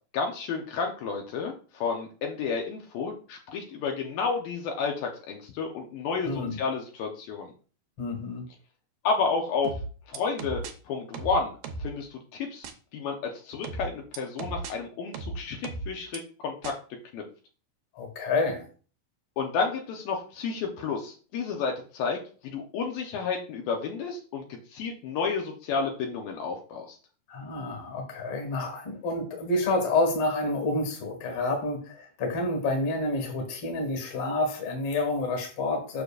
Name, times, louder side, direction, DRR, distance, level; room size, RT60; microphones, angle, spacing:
voice 1, 0.1-7.5 9.0-9.7 10.1-11.5 11.8-16.8 17.1-17.2 19.4-27.0, left 5 dB, 75° left, 1 dB, 2.5 m, -31 dB
voice 2, 6.3-6.6 8.0-8.4 18.0-18.6 27.3-36.0, left 2 dB, 50° left, 3 dB, 2.2 m, -28 dB
sound 1, 9.6-10.7 11.1-11.9 12.6-12.7 13.6-14.7 15.1-16.2 16.6-16.7, right 3 dB, 75° right, 2.4 m, -36 dB
7.0 x 6.3 x 2.4 m, 0.38 s
omnidirectional pair, 4.2 m